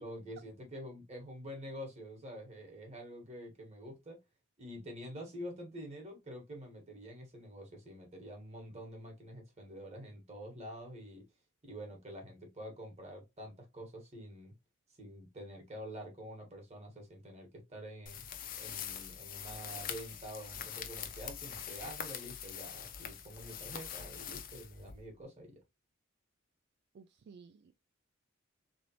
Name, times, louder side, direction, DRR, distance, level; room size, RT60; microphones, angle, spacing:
voice 1, 0.0-4.2 4.6-11.2 11.6-14.5 15.0-18.3 18.6-25.6, equal, 35° right, 1.6 m, -47 dB
sound 1, 18.1-25.2, left 8 dB, 45° left, 0.6 m, -44 dB
voice 2, 26.9-27.7, right 5 dB, 55° right, 0.3 m, -55 dB
3.8 x 3.4 x 3.0 m
head